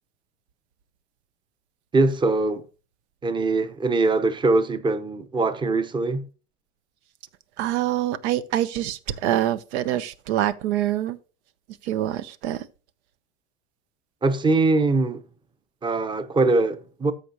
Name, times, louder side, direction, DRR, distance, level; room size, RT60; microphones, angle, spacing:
voice 1, 1.9-2.6 3.2-6.3 14.2-15.2 15.8-17.1, right 3 dB, 15° right, 0.8 m, -22 dB
voice 2, 7.6-11.2 11.9-12.6, right 12 dB, 75° right, 0.9 m, -25 dB
13.5 x 5.1 x 2.9 m
supercardioid pair, 115°, 34 cm